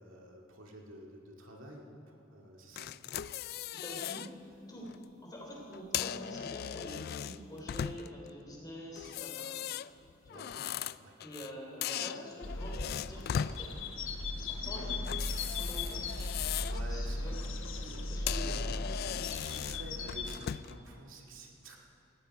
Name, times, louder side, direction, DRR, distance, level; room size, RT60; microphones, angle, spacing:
voice 1, 0.0-2.9 10.3-10.6 11.0-11.2 14.5-14.6 16.6-18.7 19.2-21.8, right 1 dB, 90° right, 0 dB, 2.1 m, -50 dB
sound 1, 2.8-4.3 4.7-5.0 5.7-8.3 9.0-11.5 11.8-13.6 15.0-16.8 17.2-17.5 17.9-18.0 18.3-20.8, left 9 dB, 50° left, 0.3 m, -38 dB
voice 2, 3.7-4.3 4.7-9.6 10.2-10.5 11.2-13.8 14.4-16.0 16.7-17.4 18.1-18.6, equal, 20° left, -2 dB, 3.5 m, -46 dB
sound 2, 12.4-20.4, left 2 dB, 80° left, 1.1 m, -37 dB
18.0 x 16.0 x 4.7 m, 2.6 s
head